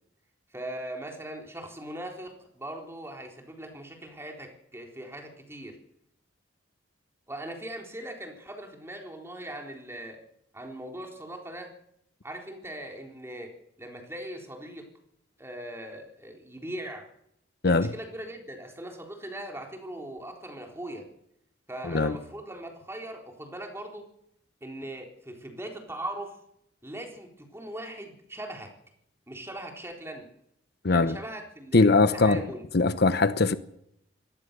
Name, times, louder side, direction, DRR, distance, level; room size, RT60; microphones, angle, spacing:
voice 1, 0.5-5.8 7.3-10.2 10.5-11.7 12.2-13.5 13.8-14.9 15.4-17.1 17.6-21.1 21.7-24.1 24.6-26.4 26.8-28.7 29.3-30.3 30.9-32.6, right 1 dB, 15° right, 3.9 m, -40 dB
voice 2, 21.8-22.2 30.8-31.2 31.7-32.4 32.7-33.6, left 3 dB, 60° left, 0.9 m, -21 dB
23.5 x 18.0 x 6.8 m
head